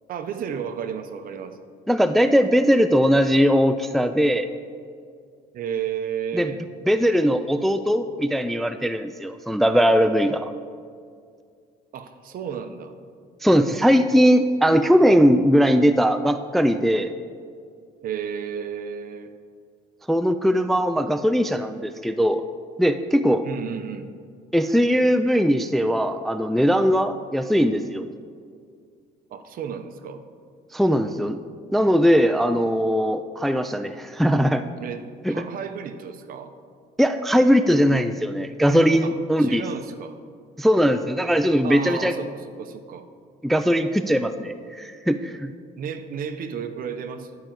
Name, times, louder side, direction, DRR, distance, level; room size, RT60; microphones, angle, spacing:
voice 1, 0.1-1.6 5.5-6.6 11.9-12.9 18.0-19.3 23.4-24.1 29.3-30.2 34.8-36.5 39.0-40.2 41.6-43.1 45.8-47.4, right 7 dB, 55° right, 9 dB, 0.8 m, -33 dB
voice 2, 1.9-4.5 6.3-6.5 6.9-10.5 13.4-17.1 20.1-22.4 22.8-23.4 24.5-28.0 30.7-31.4 31.7-34.6 35.2-35.4 37.0-39.7 40.6-42.1 43.4-45.5, equal, ahead, 10 dB, 0.3 m, -20 dB
11.0 x 5.1 x 7.6 m, 2.2 s
cardioid pair, 110°, 17 cm